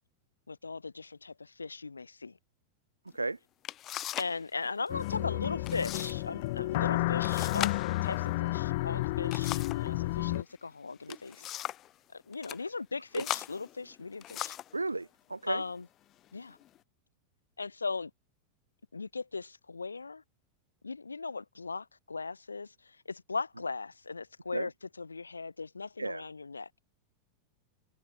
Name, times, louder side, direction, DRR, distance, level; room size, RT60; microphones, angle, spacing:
voice 1, 0.5-2.4 4.2-11.5 12.1-14.6 15.5-15.9 16.3-16.6 17.6-18.1 18.9-20.2 20.8-26.7, left 4 dB, 80° left, 1.7 m, -38 dB
sound 1, 3.1-3.2 3.6-4.4 4.7-5.1 5.6-6.2 6.5-6.6 7.2-9.9 10.9-11.9 12.3-12.6 13.1-14.8 15.5-15.7 16.3-16.8, left 13 dB, 30° left, 0.9 m, -39 dB
sound 2, 4.9-10.4, left 19 dB, 50° left, 0.4 m, -31 dB
voice 2, 14.7-15.6 24.5-24.7 26.0-26.2, right 3 dB, 80° right, 0.4 m, -34 dB
figure-of-eight pair, 90°, 0 cm